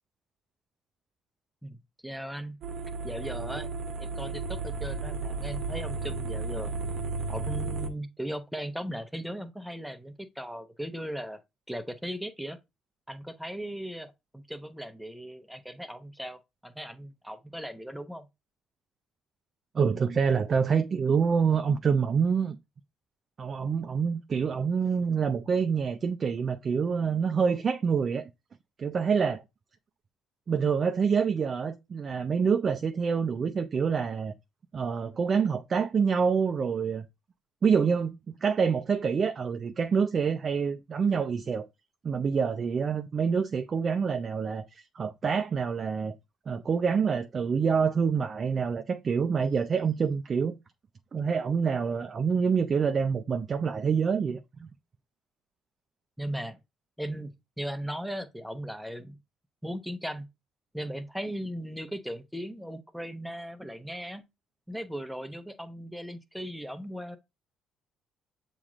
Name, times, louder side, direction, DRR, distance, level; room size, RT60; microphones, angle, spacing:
voice 1, 1.6-2.6 3.0-3.7 4.0-6.7 7.3-11.4 11.7-12.6 13.1-18.3 56.2-56.6 57.0-59.2 59.6-60.3 60.7-64.2 64.7-67.2, equal, ahead, 0.8 m, -37 dB
sound 1, 2.6-7.9, right 3 dB, 60° right, 0.9 m, -33 dB
voice 2, 19.7-22.6 23.4-28.3 28.8-29.4 30.5-34.3 34.7-37.0 37.6-41.6 42.0-46.1 46.5-50.6 51.1-54.7, right 6 dB, 45° right, 0.5 m, -26 dB
7.1 x 3.1 x 2.4 m
supercardioid pair, 70°, 0 cm